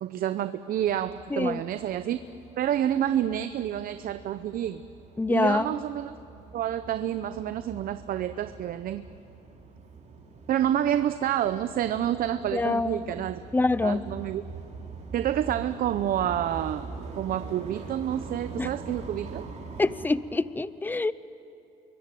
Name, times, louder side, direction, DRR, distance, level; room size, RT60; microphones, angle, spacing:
voice 1, 0.0-2.2 2.6-4.8 5.3-6.1 6.5-9.0 10.5-13.4 13.8-14.4 15.1-16.9 17.1-19.4, right 11 dB, 60° right, 11 dB, 0.8 m, -28 dB
sound 1, 0.8-20.1, right 4 dB, 45° right, 4.6 m, -43 dB
voice 2, 1.3-1.6 5.2-5.8 12.5-13.1 13.5-14.1 18.6-18.7 19.8-21.1, left 3 dB, 10° left, 16 dB, 0.7 m, -26 dB
26.5 x 23.0 x 9.2 m, 3.0 s
cardioid pair, 110°, 17 cm